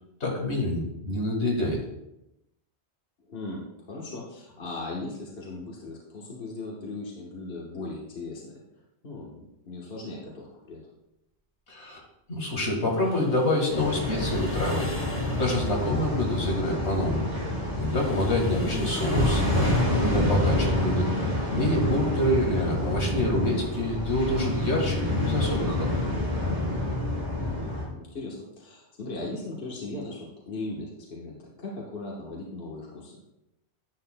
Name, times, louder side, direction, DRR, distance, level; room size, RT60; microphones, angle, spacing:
voice 1, 0.2-1.8 11.7-12.0 12.3-14.9 15.4-17.2 17.7-19.7 20.0-21.1 21.5-25.9, left 1 dB, 75° left, 0 dB, 2.0 m, -27 dB
voice 2, 3.3-8.6 9.0-10.8 19.3-19.7 27.4-33.2, left 2 dB, 60° left, -3 dB, 1.5 m, -38 dB
sound 1, 12.9-16.0 17.5-20.8, left 2 dB, 10° left, 1.0 m, -43 dB
sound 2, 13.7-27.9, left 1 dB, 20° right, 3.3 m, -28 dB
10.5 x 8.2 x 2.2 m, 0.87 s
omnidirectional pair, 1.2 m